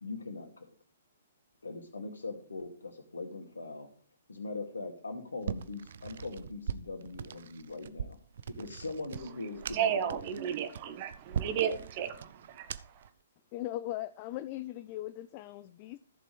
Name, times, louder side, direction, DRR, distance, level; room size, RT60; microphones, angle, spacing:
voice 1, 0.0-0.7 1.6-3.9 4.3-8.2 8.6-10.2, left 3 dB, 70° left, 2.2 m, -41 dB
sound 1, 5.4-13.1, right 8 dB, 55° right, 0.5 m, -41 dB
voice 2, 9.7-13.1, right 8 dB, 35° right, 1.2 m, -33 dB
voice 3, 13.5-16.0, left 15 dB, 30° left, 0.4 m, -39 dB
14.5 x 6.7 x 3.3 m
figure-of-eight pair, 120°, 0 cm